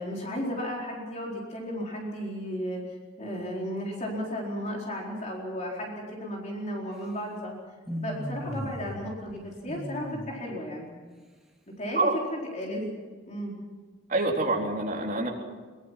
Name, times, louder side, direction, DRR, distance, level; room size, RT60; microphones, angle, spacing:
voice 1, 0.0-2.8 3.2-7.6 8.0-11.0 11.8-12.9 13.3-13.5, equal, 35° left, -2 dB, 4.3 m, -34 dB
sound 1, 7.9-9.0 9.3-10.3, equal, ahead, 2.6 m, -36 dB
voice 2, 14.1-15.3, right 2 dB, 40° right, -1 dB, 3.8 m, -26 dB
23.0 x 22.0 x 5.9 m, 1.4 s
head